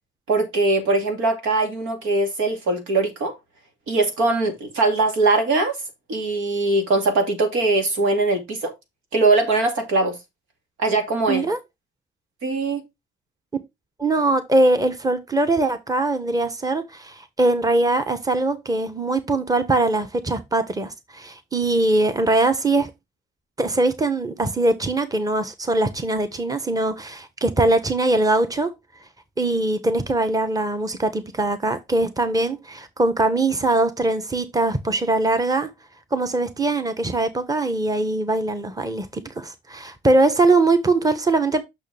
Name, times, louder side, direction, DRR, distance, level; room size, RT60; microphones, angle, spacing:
voice 1, 0.3-3.3 3.9-5.8 6.1-8.7 9.1-10.2 10.8-11.5 12.4-12.9, right 3 dB, 90° right, 2.5 m, -21 dB
voice 2, 11.3-11.6 14.0-22.9 23.6-28.7 29.4-35.7 36.1-41.6, right 2 dB, 20° right, 1.2 m, -21 dB
6.4 x 6.2 x 3.4 m
cardioid pair, 90°, 20 cm